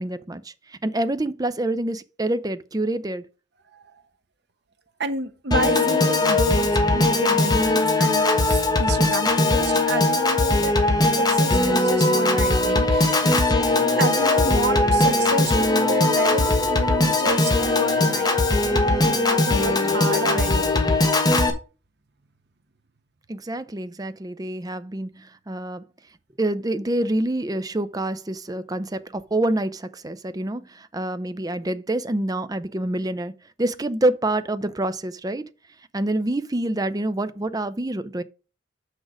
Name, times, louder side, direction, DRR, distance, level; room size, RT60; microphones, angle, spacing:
voice 1, 0.0-3.2 23.3-25.8 26.4-33.3 33.6-35.5 35.9-38.2, right 1 dB, 20° right, 0.5 m, -27 dB
voice 2, 5.0-10.8 11.1-13.5 14.0-18.4 18.6-21.0, right 2 dB, 60° right, 1.0 m, -30 dB
Piano / Organ, 5.5-21.5, left 2 dB, 20° left, 1.3 m, -20 dB
6.5 x 6.4 x 5.0 m
head